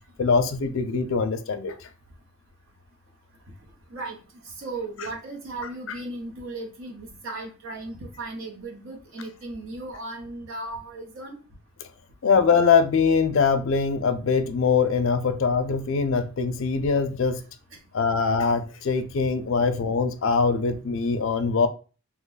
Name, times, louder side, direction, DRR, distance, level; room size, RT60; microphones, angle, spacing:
voice 1, 0.2-1.9 12.2-17.4 17.9-21.7, left 5 dB, 60° left, 0.4 m, -22 dB
voice 2, 4.6-11.4, right 2 dB, 65° right, 0.9 m, -36 dB
2.9 x 2.2 x 3.9 m
head